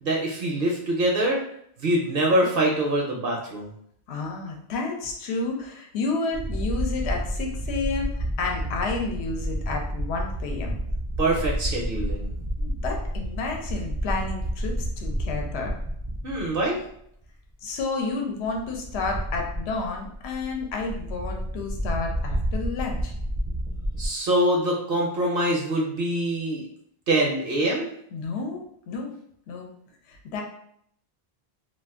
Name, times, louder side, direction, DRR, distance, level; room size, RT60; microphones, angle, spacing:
voice 1, 0.0-1.4 1.8-3.7 11.2-12.3 16.2-16.8 24.0-26.6 27.1-27.9, right 1 dB, 65° right, -1 dB, 0.7 m, -24 dB
voice 2, 4.1-10.8 12.6-15.7 17.6-23.1 28.1-29.2 29.5-29.7 30.1-30.4, left 3 dB, 80° left, 2 dB, 0.8 m, -31 dB
sound 1, 6.3-16.9 17.2-17.3 18.4-24.1, equal, 30° right, 0.4 m, -30 dB
2.4 x 2.2 x 3.6 m, 0.69 s
omnidirectional pair, 1.1 m